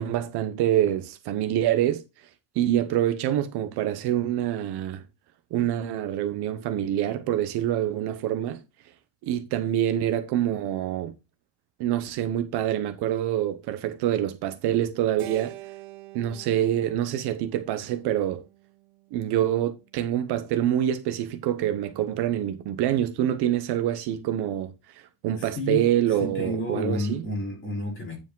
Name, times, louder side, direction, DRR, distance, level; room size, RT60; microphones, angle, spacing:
voice 1, 0.0-2.0 2.5-5.0 5.5-8.6 9.3-11.1 11.8-15.6 16.1-18.4 19.1-27.2, right 11 dB, 50° right, 0.9 m, -26 dB
Keyboard (musical), 15.2-19.6, right 17 dB, 80° right, 1.9 m, -46 dB
voice 2, 25.5-25.9 26.2-28.2, left 1 dB, 25° left, 3.3 m, -30 dB
9.5 x 5.0 x 3.7 m
cardioid pair, 175°, 49 cm